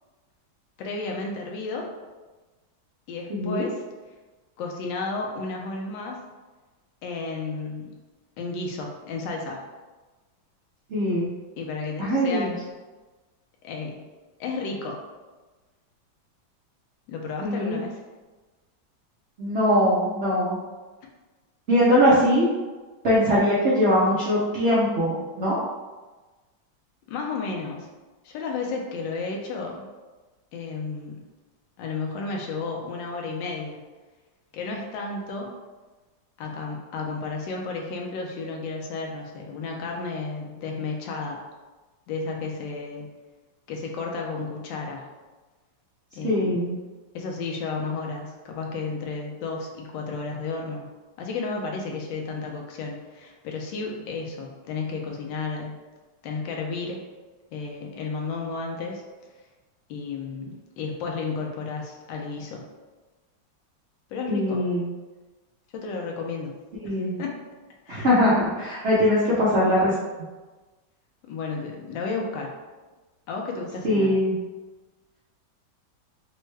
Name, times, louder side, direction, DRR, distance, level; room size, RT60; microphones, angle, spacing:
voice 1, 0.8-1.9 3.1-3.8 4.6-6.2 7.0-8.0 8.4-9.6 11.6-12.5 13.6-14.0 14.4-15.0 17.1-17.9 27.1-27.9 28.2-29.9 30.5-31.2 31.8-33.8 34.5-35.5 36.4-41.4 42.1-43.1 43.7-45.1 46.1-46.6 47.1-50.9 51.2-55.8 56.2-57.0 57.5-59.0 59.9-62.6 64.1-64.6 65.7-66.5 67.2-67.4 67.9-68.1 71.3-72.5 73.3-74.1, left 4 dB, 80° left, 0 dB, 1.3 m, -32 dB
voice 2, 3.3-3.7 10.9-11.3 12.0-12.5 17.4-17.8 19.4-20.6 21.7-22.5 23.0-25.6 46.2-46.8 64.3-64.9 66.8-67.2 67.9-69.9 73.8-74.4, equal, 75° right, -9 dB, 0.6 m, -21 dB
3.5 x 2.2 x 3.1 m, 1.2 s
omnidirectional pair, 2.1 m